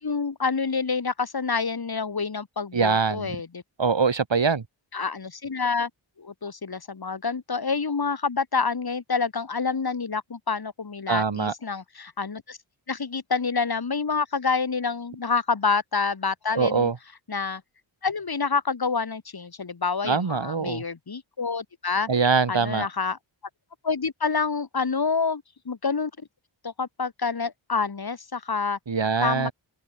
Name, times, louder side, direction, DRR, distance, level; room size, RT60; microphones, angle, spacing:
voice 1, 0.0-3.6 4.9-5.9 6.2-12.6 12.9-16.9 17.3-17.6 18.0-22.1 22.5-23.2 23.8-26.1 26.6-28.8 29.2-29.5, left 5 dB, 50° left, 3.0 m, -27 dB
voice 2, 2.7-3.3 3.8-4.6 11.1-11.5 16.6-17.0 20.0-20.8 22.1-22.9 28.9-29.5, right 5 dB, 65° right, 7.5 m, -23 dB
wide cardioid pair, 115°, 48 cm